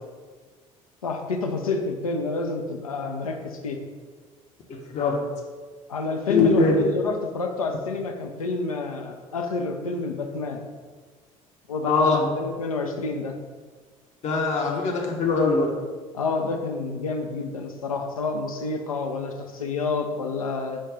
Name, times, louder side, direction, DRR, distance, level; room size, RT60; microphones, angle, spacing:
voice 1, 1.0-3.8 5.9-10.6 11.7-13.3 14.7-15.1 16.1-20.8, left 3 dB, 80° left, 5 dB, 0.4 m, -29 dB
voice 2, 4.7-5.2 6.3-6.8 11.8-12.3 14.2-15.7, left 3 dB, 40° left, 0 dB, 0.7 m, -22 dB
5.1 x 2.2 x 3.6 m, 1.4 s
figure-of-eight pair, 55°, 18 cm